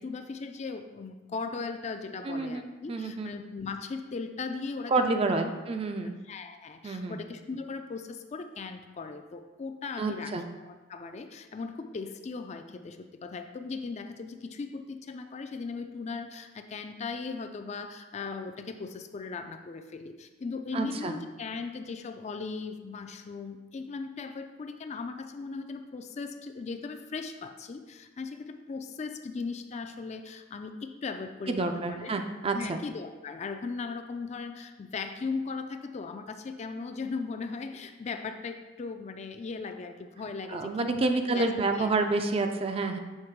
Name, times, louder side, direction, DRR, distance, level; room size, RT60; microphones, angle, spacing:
voice 1, 0.0-5.5 6.0-41.9, left 4 dB, 35° left, 7 dB, 0.4 m, -38 dB
voice 2, 2.2-2.6 2.9-3.3 4.9-6.1 6.8-7.2 10.0-10.4 20.7-21.2 31.5-32.8 40.5-43.0, right 3 dB, 30° right, 6 dB, 0.4 m, -28 dB
6.6 x 3.5 x 4.6 m, 1.2 s
head